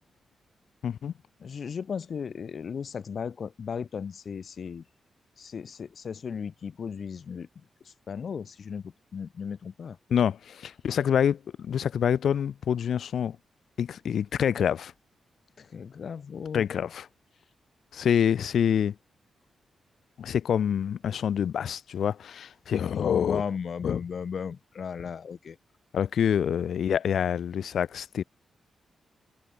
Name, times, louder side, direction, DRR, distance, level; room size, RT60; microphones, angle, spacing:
voice 1, 0.8-1.1 10.1-13.4 13.8-14.9 16.5-17.1 17.9-19.0 20.2-23.4 23.8-24.0 25.9-28.2, left 8 dB, 70° left, 0.3 m, -26 dB
voice 2, 1.4-4.9 5.4-10.0 15.6-16.6 23.0-25.6, left 6 dB, 50° left, 1.1 m, -36 dB
wide cardioid pair, 155°, 0 cm